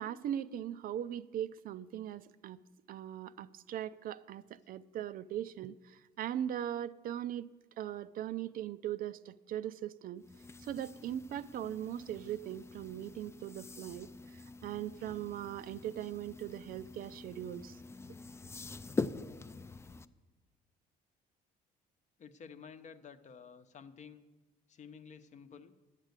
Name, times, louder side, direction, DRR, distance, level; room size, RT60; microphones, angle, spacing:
voice 1, 0.0-2.6 2.9-7.5 7.8-10.2 10.6-17.8, right 11 dB, 60° right, 15 dB, 0.4 m, -40 dB
sound 1, 10.2-20.1, left 3 dB, 15° left, 0.4 m, -44 dB
voice 2, 22.2-24.3 24.7-25.7, left 6 dB, 45° left, 9 dB, 0.8 m, -52 dB
10.5 x 7.4 x 8.1 m, 1.2 s
cardioid pair, 110°, 17 cm